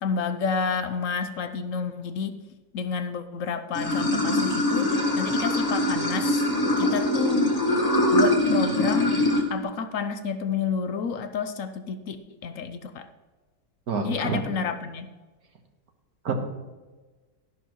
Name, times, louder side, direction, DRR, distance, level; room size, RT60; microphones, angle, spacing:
voice 1, 0.0-2.4 2.7-4.9 5.2-6.4 6.8-7.4 8.1-9.2 9.5-12.2 12.4-13.1 14.0-15.1, left 6 dB, 65° left, 10 dB, 0.9 m, -30 dB
Water / Sink (filling or washing), 3.7-9.4, left 1 dB, 25° left, 1.5 m, -23 dB
voice 2, 13.9-14.4 16.2-16.3, right 5 dB, 60° right, 4 dB, 1.7 m, -27 dB
12.5 x 11.0 x 3.1 m, 1.3 s
omnidirectional pair, 1.9 m